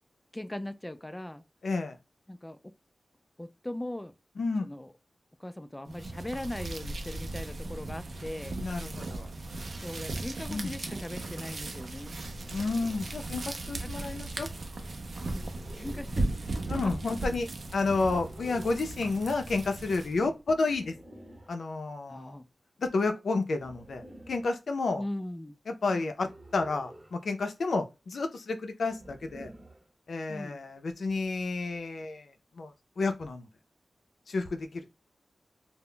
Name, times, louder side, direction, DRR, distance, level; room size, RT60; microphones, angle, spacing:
voice 1, 0.3-1.4 2.3-2.7 3.4-4.1 4.6-4.9 5.4-8.6 9.8-12.2 13.8-13.9 15.3-15.5 15.7-16.3 16.8-16.9 20.2-20.3 22.1-22.5 25.0-25.6 25.9-26.1 30.3-30.6, left 1 dB, 15° left, 0.3 m, -39 dB
voice 2, 1.6-2.0 4.4-4.7 8.6-9.3 10.5-10.7 12.5-14.5 16.7-20.9 21.5-22.4 22.8-25.0 25.7-29.5 30.1-33.5 34.3-34.9, left 3 dB, 80° left, 0.5 m, -31 dB
sound 1, 5.9-20.3, right 2 dB, 65° right, 0.4 m, -37 dB
sound 2, 12.3-13.2 15.2-16.2 17.9-18.9 20.6-21.6 23.5-24.5 26.2-27.2 28.9-29.9, right 1 dB, 30° right, 0.7 m, -50 dB
2.1 x 2.0 x 3.7 m
wide cardioid pair, 100°, 0 cm